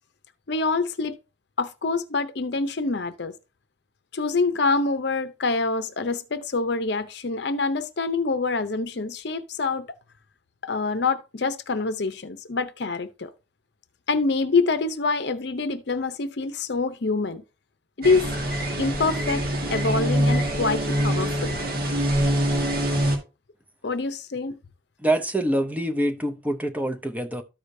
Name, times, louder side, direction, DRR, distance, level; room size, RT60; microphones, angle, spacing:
voice 1, 0.5-1.2 1.6-3.3 4.1-9.9 10.6-13.3 14.1-17.4 18.0-18.3 18.8-21.5 23.8-24.6, left 3 dB, 55° left, 0.6 m, -26 dB
sound 1, 18.0-23.2, right 1 dB, 50° right, 1.7 m, -24 dB
voice 2, 25.0-27.4, right 1 dB, 10° right, 0.6 m, -25 dB
13.5 x 4.9 x 2.6 m
head